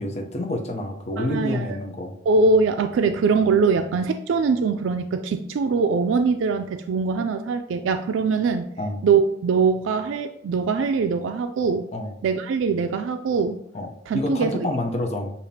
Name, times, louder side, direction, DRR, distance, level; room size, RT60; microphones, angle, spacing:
voice 1, 0.0-2.1 8.8-9.0 11.9-12.1 13.7-15.5, left 1 dB, 35° left, 2 dB, 0.7 m, -28 dB
voice 2, 1.2-1.8 2.3-8.7 9.0-11.9 12.2-13.6 14.1-14.5, right 4 dB, 85° right, 7 dB, 0.3 m, -22 dB
6.8 x 2.8 x 2.8 m, 0.76 s
head